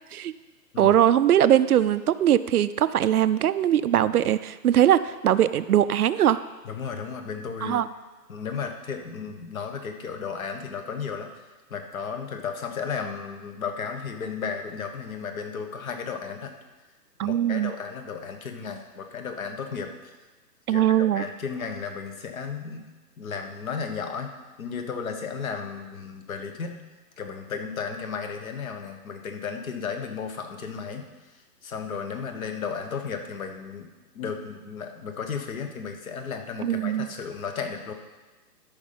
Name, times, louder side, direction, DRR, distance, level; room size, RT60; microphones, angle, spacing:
voice 1, 0.8-6.4 7.6-7.8 17.2-17.7 20.7-21.2 36.6-37.1, right 11 dB, 65° right, 14 dB, 0.5 m, -21 dB
voice 2, 6.6-7.8 8.3-11.3 11.7-16.5 17.2-20.1 20.7-22.9 23.2-24.3 24.6-26.8 27.2-31.0 31.6-33.9 34.1-37.9, left 6 dB, 55° left, 6 dB, 1.4 m, -34 dB
13.0 x 5.4 x 5.6 m, 1.2 s
hypercardioid pair, 150°, 49 cm